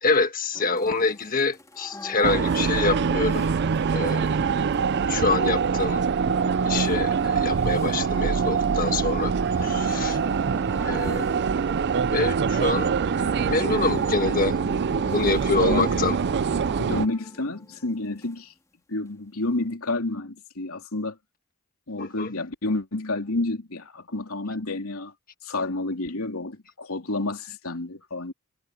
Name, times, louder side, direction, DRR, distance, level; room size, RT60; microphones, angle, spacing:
voice 1, 0.0-3.5 3.9-4.4 5.1-6.0 6.6-9.3 9.6-10.2 10.8-11.3 12.1-12.9 13.5-14.6 15.1-16.2 22.0-22.3, left 3 dB, 40° left, 1.4 m, -26 dB
sound 1, 0.5-18.4 19.6-19.7, left 1 dB, 15° left, 2.8 m, -43 dB
sound 2, 2.2-17.1, right 6 dB, 50° right, 0.4 m, -24 dB
voice 2, 16.8-18.5 18.9-21.2 21.9-25.1 25.4-28.3, left 2 dB, 75° left, 3.3 m, -30 dB
head